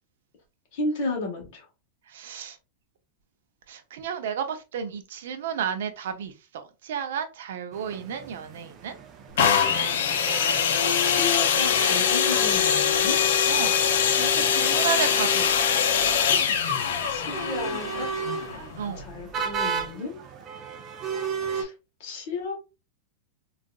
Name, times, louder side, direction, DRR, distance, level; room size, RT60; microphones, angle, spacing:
voice 1, 0.7-1.6 11.0-13.2 17.1-18.1 19.0-20.2 21.5-21.7 22.0-22.5, left 3 dB, 45° left, 1.2 m, -32 dB
voice 2, 2.1-2.6 3.7-9.0 10.1-10.7 11.8-12.0 13.5-15.8 18.8-19.1, right 7 dB, 70° right, 0.6 m, -33 dB
sound 1, 7.7-21.6, right 6 dB, 20° right, 0.4 m, -36 dB
sound 2, 9.4-19.1 19.8-19.9, left 7 dB, 75° left, 0.6 m, -23 dB
3.8 x 2.4 x 2.2 m
supercardioid pair, 175°, 0 cm